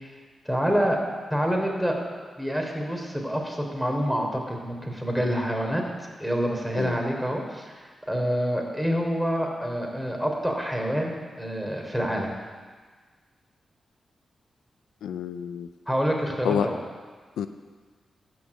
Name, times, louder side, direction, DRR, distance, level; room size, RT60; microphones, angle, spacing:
voice 1, 0.5-1.0 1.3-1.9 2.4-5.8 6.2-12.3 15.9-16.8, equal, ahead, 1 dB, 3.5 m, -27 dB
voice 2, 15.0-15.7 16.4-16.7 17.4-17.5, left 8 dB, 85° left, 10 dB, 0.4 m, -28 dB
13.0 x 6.3 x 8.4 m, 1.5 s
supercardioid pair, 40°, 0 cm